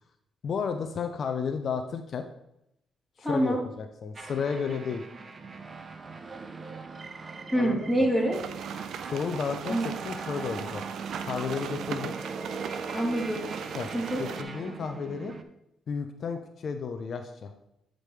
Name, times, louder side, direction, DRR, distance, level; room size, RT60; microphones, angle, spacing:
voice 1, 0.4-2.3 3.2-5.1 7.5-7.9 9.1-10.8 11.2-12.1 13.7-13.9 14.2-15.3 15.9-17.5, left 6 dB, 55° left, 6 dB, 0.6 m, -32 dB
voice 2, 3.2-3.6 7.5-8.4 9.7-9.9 12.9-13.4 13.9-14.2, right 1 dB, 5° right, -4 dB, 2.7 m, -26 dB
sound 1, 4.1-15.4, right 4 dB, 30° right, 0.6 m, -40 dB
sound 2, 8.3-14.4, right 8 dB, 70° right, 0.4 m, -38 dB
9.2 x 5.0 x 3.2 m, 0.83 s
cardioid pair, 90°, 0 cm